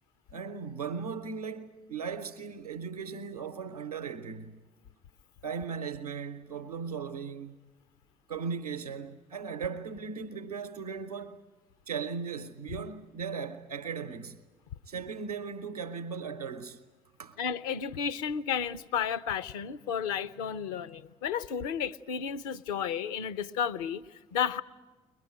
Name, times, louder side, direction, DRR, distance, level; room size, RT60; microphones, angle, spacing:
voice 1, 0.3-4.6 5.4-7.6 8.3-11.4 11.9-14.4 14.9-16.8 17.2-17.4, right 6 dB, 85° right, 0.7 m, -37 dB
voice 2, 17.4-24.6, left 7 dB, 70° left, 0.7 m, -32 dB
22.5 x 20.0 x 9.0 m
figure-of-eight pair, 50°, 19 cm